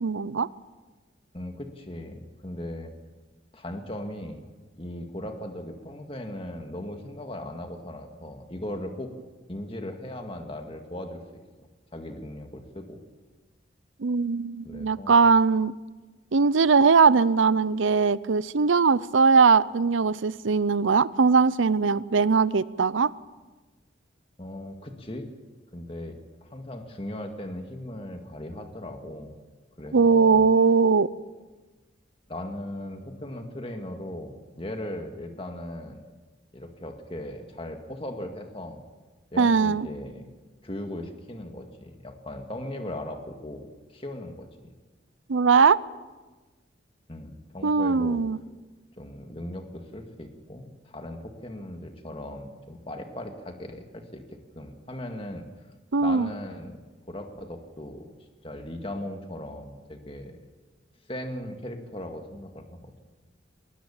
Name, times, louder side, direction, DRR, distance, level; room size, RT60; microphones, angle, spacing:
voice 1, 0.0-0.5 14.0-15.7 16.3-23.1 29.9-31.1 39.4-39.9 45.3-45.8 47.6-48.4 55.9-56.3, right 5 dB, 80° right, 18 dB, 0.6 m, -20 dB
voice 2, 1.3-2.9 3.5-4.4 4.8-9.1 9.5-13.0 14.6-15.2 24.4-25.3 25.7-29.3 29.8-30.5 32.3-36.0 36.5-38.8 39.3-40.3 40.6-44.7 47.1-48.2 49.0-55.5 56.0-56.8 57.1-58.1 58.4-60.4 61.1-62.9, left 1 dB, 30° left, 4 dB, 2.0 m, -38 dB
21.0 x 19.5 x 7.3 m, 1.3 s
head